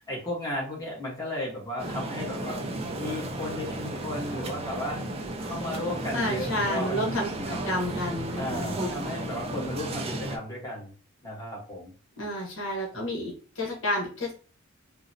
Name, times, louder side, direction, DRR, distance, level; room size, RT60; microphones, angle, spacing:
voice 1, 0.1-2.6 3.0-5.0 5.4-7.0 7.4-7.6 8.3-10.9 11.2-11.9 12.9-13.0, left 1 dB, 15° left, -4 dB, 1.1 m, -34 dB
sound 1, 1.8-10.4, right 1 dB, 30° right, 0.4 m, -34 dB
voice 2, 6.1-7.3 7.6-8.7 12.2-14.3, left 1 dB, 65° left, -1 dB, 1.0 m, -30 dB
3.7 x 2.0 x 2.6 m, 0.39 s
head